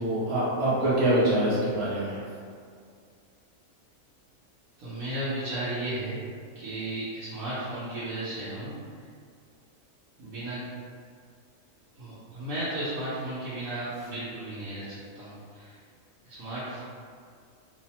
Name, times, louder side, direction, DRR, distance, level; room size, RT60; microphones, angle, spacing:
voice 1, 0.0-2.2, right 1 dB, 40° right, -8 dB, 0.5 m, -25 dB
voice 2, 4.8-6.2 6.5-9.1 10.2-10.6 12.0-15.8 16.2-16.9, right 1 dB, 80° right, -12 dB, 1.1 m, -34 dB
3.0 x 2.0 x 2.8 m, 2.2 s
omnidirectional pair, 1.4 m